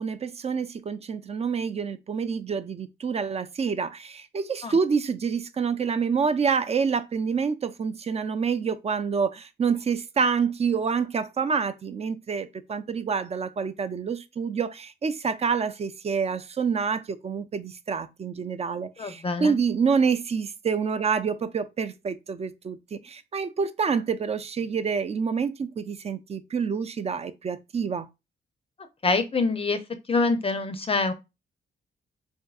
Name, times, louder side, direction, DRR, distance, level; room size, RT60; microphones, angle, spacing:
voice 1, 0.0-28.1, right 6 dB, 35° right, 0.4 m, -27 dB
voice 2, 19.0-19.6 29.0-29.8 30.1-31.1, left 3 dB, 30° left, 0.5 m, -25 dB
3.4 x 2.7 x 2.3 m
cardioid pair, 85°, 19 cm